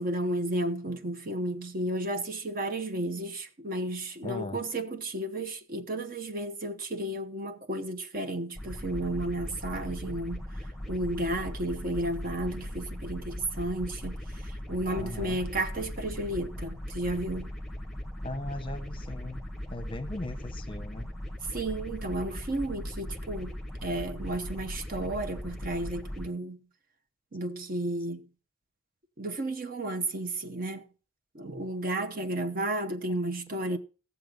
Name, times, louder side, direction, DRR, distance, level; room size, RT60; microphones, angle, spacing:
voice 1, 0.0-10.5 10.9-17.5 21.5-26.7 27.3-28.3 29.2-30.9 31.3-33.8, right 1 dB, 45° right, 0.9 m, -33 dB
voice 2, 4.2-4.6 15.0-15.4 18.2-21.1 33.1-33.2, left 1 dB, 25° left, 0.8 m, -38 dB
sound 1, 8.6-26.3, left 1 dB, ahead, 1.1 m, -39 dB
16.5 x 7.1 x 5.2 m
head